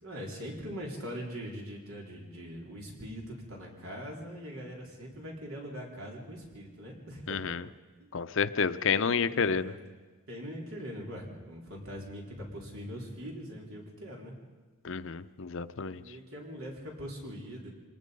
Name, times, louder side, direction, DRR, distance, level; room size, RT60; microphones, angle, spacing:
voice 1, 0.0-7.5 8.0-8.1 8.6-9.8 10.3-14.4 15.8-17.7, equal, 80° right, -1 dB, 4.3 m, -42 dB
voice 2, 7.3-7.7 8.1-9.7 14.8-16.0, left 6 dB, 65° left, 13 dB, 0.6 m, -30 dB
25.5 x 19.5 x 5.4 m, 1.3 s
head